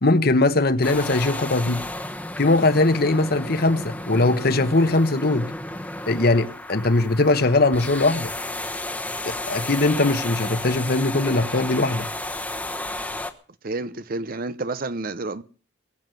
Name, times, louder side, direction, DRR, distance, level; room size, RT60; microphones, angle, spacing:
voice 1, 0.0-1.8 2.4-5.5 6.1-8.3 9.3-12.1, left 2 dB, 55° left, 1.1 m, -20 dB
sound 1, 0.8-13.3, left 1 dB, 10° left, 1.2 m, -33 dB
voice 2, 13.6-15.4, right 2 dB, 50° right, 0.8 m, -29 dB
20.5 x 7.4 x 7.8 m
head